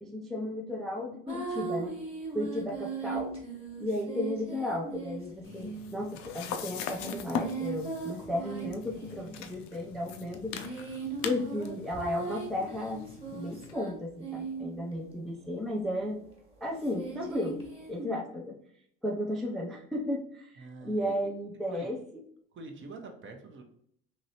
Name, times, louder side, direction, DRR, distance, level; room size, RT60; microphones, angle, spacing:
voice 1, 0.0-2.0 2.3-3.3 3.8-10.5 11.2-13.0 13.3-16.2 16.6-17.6 17.9-18.6 19.0-22.0, left 1 dB, ahead, -2 dB, 0.3 m, -34 dB
sound 1, 1.3-6.2 6.9-9.4 10.3-14.9 16.8-18.1, right 4 dB, 15° right, 1.4 m, -39 dB
sound 2, 5.4-13.7, left 7 dB, 55° left, 0.5 m, -41 dB
voice 2, 20.6-21.1 21.7-21.9 22.5-23.6, right 3 dB, 35° right, 4 dB, 0.7 m, -45 dB
2.9 x 2.8 x 2.8 m, 0.67 s
hypercardioid pair, 75°, 36 cm